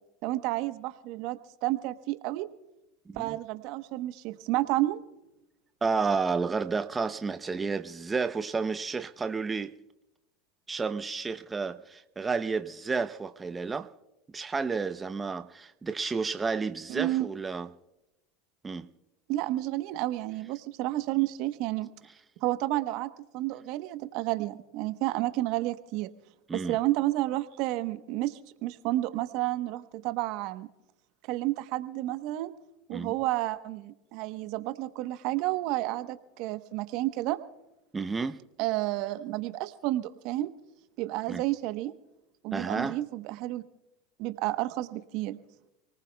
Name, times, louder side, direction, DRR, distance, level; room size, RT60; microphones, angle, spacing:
voice 1, 0.2-2.5 3.2-5.0 16.9-17.3 19.3-21.9 22.4-26.1 26.5-30.7 31.3-32.5 32.9-37.4 38.6-40.5 41.0-41.9 42.4-43.6 44.2-45.4, right 17 dB, 60° right, 1.0 m, -31 dB
voice 2, 5.8-9.7 10.7-13.9 14.3-17.7 18.6-18.9 26.5-26.8 32.9-33.1 37.9-38.4 41.3-41.4 42.5-43.0, right 4 dB, 20° right, 0.6 m, -31 dB
28.5 x 19.0 x 2.3 m
hypercardioid pair, 100°, 0 cm